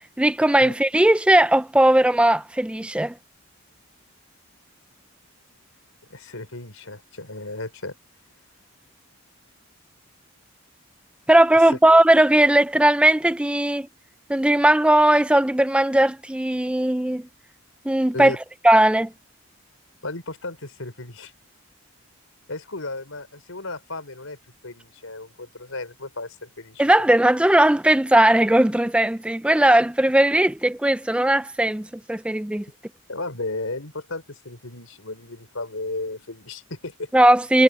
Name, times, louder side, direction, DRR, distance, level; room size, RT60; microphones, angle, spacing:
voice 1, 0.2-3.1 11.3-13.9 14.3-17.2 17.9-18.3 18.6-19.1 26.8-32.7 37.1-37.6, right 1 dB, 5° right, 0.3 m, -18 dB
voice 2, 6.1-7.9 11.7-11.8 18.1-18.4 20.0-21.3 22.5-24.4 24.6-26.8 33.1-37.1, left 2 dB, 70° left, 4.4 m, -34 dB
head